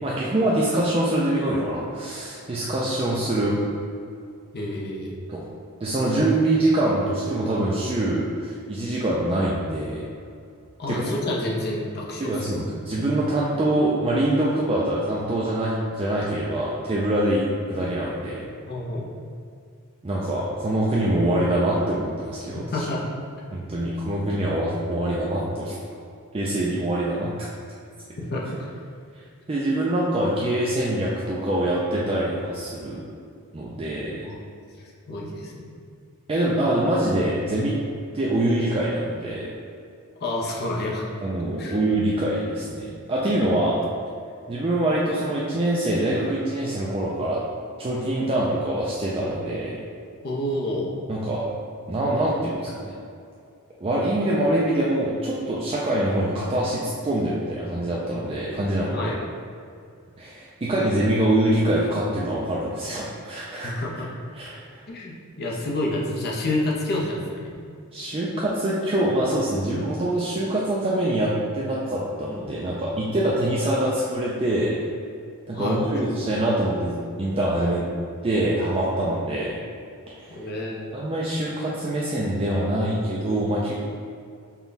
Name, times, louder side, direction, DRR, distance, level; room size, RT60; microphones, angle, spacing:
voice 1, 0.0-3.6 5.3-5.4 5.8-10.0 10.9-11.0 12.2-18.4 20.0-22.6 23.5-25.8 26.3-27.5 29.5-33.0 33.5-34.2 36.3-37.8 38.1-39.5 41.2-43.8 44.5-47.4 47.8-49.8 51.1-51.4 51.9-53.0 53.8-59.1 60.2-63.8 64.3-64.6 67.9-74.8 75.5-77.9 78.2-79.6 80.1-80.4 80.9-83.8, right 1 dB, 25° right, -5 dB, 0.4 m, -24 dB
voice 2, 4.5-5.2 10.8-12.5 18.7-19.1 22.7-23.0 28.3-28.7 34.2-34.4 35.1-35.8 40.2-41.1 41.6-41.8 50.2-50.9 58.9-59.2 63.6-64.1 64.9-67.5 75.5-75.8 80.3-80.9, left 1 dB, 45° left, -3 dB, 0.7 m, -29 dB
5.5 x 2.3 x 4.0 m, 2.4 s
head